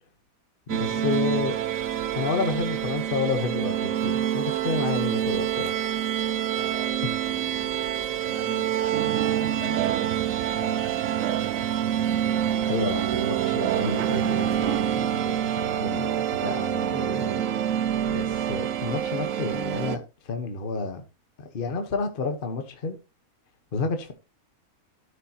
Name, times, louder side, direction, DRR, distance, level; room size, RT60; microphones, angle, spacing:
voice 1, 0.7-1.6 2.1-5.7 7.0-7.1 12.7-17.4 18.1-21.0 21.4-23.0 23.7-24.1, left 4 dB, 40° left, 1.3 m, -30 dB
sound 1, 0.7-20.0, right 10 dB, 65° right, 1.1 m, -27 dB
voice 2, 6.5-11.7, right 1 dB, 45° right, 2.5 m, -44 dB
sound 2, 8.9-14.8, right 12 dB, 85° right, 1.1 m, -32 dB
13.0 x 6.7 x 2.9 m
omnidirectional pair, 1.6 m